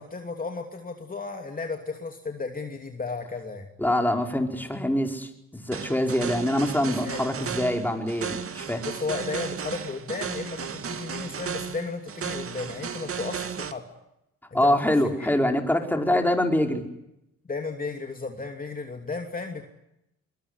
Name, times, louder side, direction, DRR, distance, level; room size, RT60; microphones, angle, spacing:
voice 1, 0.0-3.7 6.9-7.2 8.8-13.8 14.5-14.8 15.2-15.3 16.1-16.2 17.5-19.6, left 4 dB, 30° left, 4 dB, 2.9 m, -34 dB
voice 2, 3.8-8.8 14.5-16.8, left 1 dB, 5° left, 3 dB, 4.8 m, -24 dB
sound 1, 5.7-13.7, right 7 dB, 45° right, 2.2 m, -34 dB
23.0 x 22.5 x 9.9 m, 0.84 s
cardioid pair, 90°, 30 cm